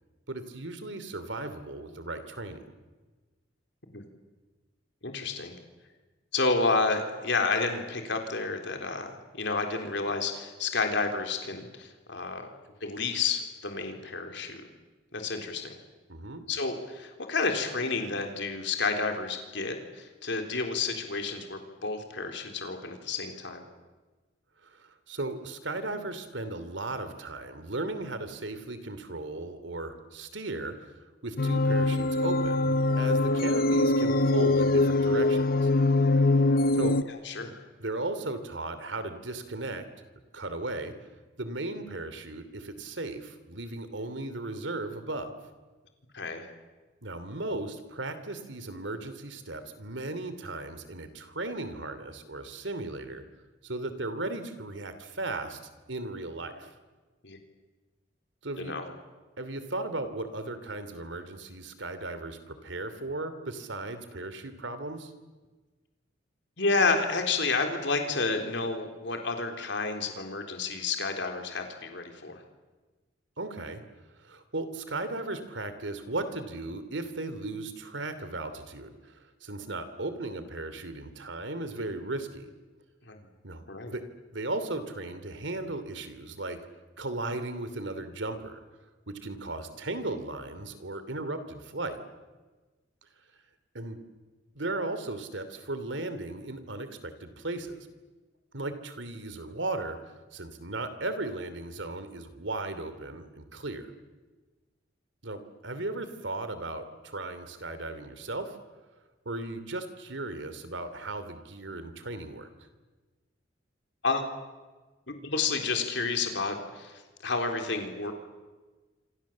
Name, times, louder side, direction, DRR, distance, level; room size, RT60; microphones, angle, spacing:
voice 1, 0.3-2.6 16.1-16.4 24.6-30.9 31.2-35.7 36.7-37.0 37.8-39.9 40.3-40.9 41.4-45.4 47.0-53.2 53.6-55.6 55.9-56.7 58.4-58.7 59.4-65.1 73.4-73.8 74.2-82.5 83.4-84.0 84.3-86.6 87.0-88.6 89.1-92.0 93.7-94.0 94.5-97.9 98.5-100.0 100.3-103.9 105.2-108.6 109.2-112.5, right 2 dB, 75° right, 11 dB, 2.9 m, -36 dB
voice 2, 5.0-5.5 6.3-12.5 12.8-14.6 15.1-15.8 16.5-23.6 37.3-37.5 46.1-46.5 57.2-57.4 58.6-58.8 66.6-72.4 83.1-83.2 83.7-83.9 114.0-114.2 115.1-118.1, left 4 dB, 70° left, 4 dB, 3.7 m, -30 dB
sound 1, 31.4-37.0, left 2 dB, 50° left, 0.9 m, -23 dB
27.0 x 26.5 x 7.5 m, 1.3 s
head